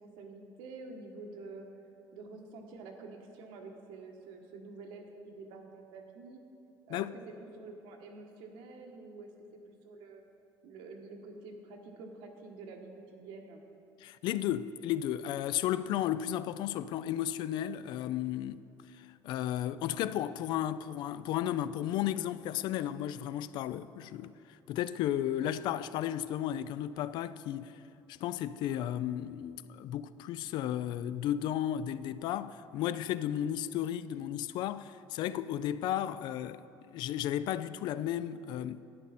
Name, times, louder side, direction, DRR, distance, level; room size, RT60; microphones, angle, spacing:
voice 1, 0.0-1.7 2.1-6.4 6.9-10.2 10.6-13.6, right 3 dB, 80° right, 1.4 m, -48 dB
voice 2, 14.0-18.6 18.9-27.8 28.1-38.8, left 11 dB, 65° left, 0.4 m, -34 dB
12.0 x 9.1 x 4.2 m
cardioid pair, 135°, 8 cm